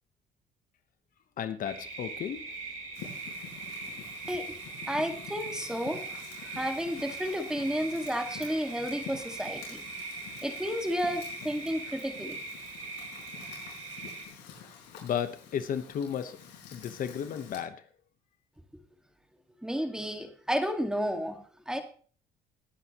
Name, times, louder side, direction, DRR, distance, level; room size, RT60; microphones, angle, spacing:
voice 1, 1.4-2.5 15.0-16.4 16.7-17.8, left 8 dB, 55° left, 10 dB, 1.1 m, -34 dB
sound 1, 1.6-14.3, right 3 dB, 45° right, 4.0 m, -41 dB
Fire, 2.9-17.6, left 7 dB, 85° left, 5.3 m, -48 dB
voice 2, 4.9-6.2 6.4-9.9 10.4-12.4 19.6-21.8, equal, 5° right, 6 dB, 1.9 m, -32 dB
20.0 x 9.6 x 3.0 m, 0.42 s
cardioid pair, 110°, 17 cm